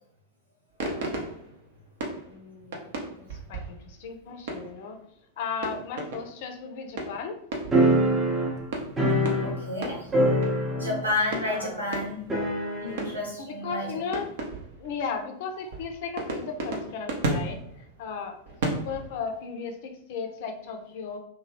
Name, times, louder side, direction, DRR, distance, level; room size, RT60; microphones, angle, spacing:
sound 1, 0.8-4.9 5.5-6.5 6.9-8.1 8.7-10.8 11.3-12.6 13.0-13.5 14.1-15.2 15.7-19.3, right 2 dB, 55° right, 0.6 m, -35 dB
voice 1, 2.3-5.0 5.4-7.4 11.4-11.8 13.4-14.3 14.8-17.6 18.0-18.4 18.7-21.2, left 5 dB, 50° left, 4 dB, 0.5 m, -36 dB
sound 2, 7.7-9.8 10.1-11.1 11.4-11.5 12.3-13.1, right 1 dB, 20° right, 0.7 m, -24 dB
voice 2, 9.4-10.1 10.8-12.3 12.8-13.9, left 2 dB, 80° right, -3 dB, 1.1 m, -30 dB
2.9 x 2.3 x 2.9 m, 0.68 s
figure-of-eight pair, 90°, 0 cm